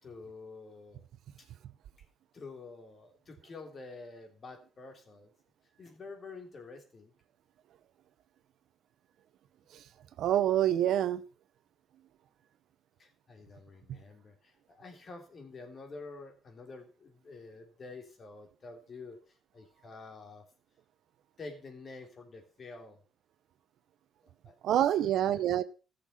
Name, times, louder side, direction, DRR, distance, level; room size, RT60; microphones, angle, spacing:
voice 1, 0.0-1.0 1.4-1.5 2.3-5.3 5.8-7.1 13.0-20.4 21.4-23.0 24.2-24.5 25.0-25.4, left 3 dB, 45° left, 3.3 m, -48 dB
voice 2, 10.2-11.2 24.6-25.6, right 11 dB, 75° right, 0.8 m, -26 dB
14.0 x 6.9 x 5.5 m
cardioid pair, 90°, 0 cm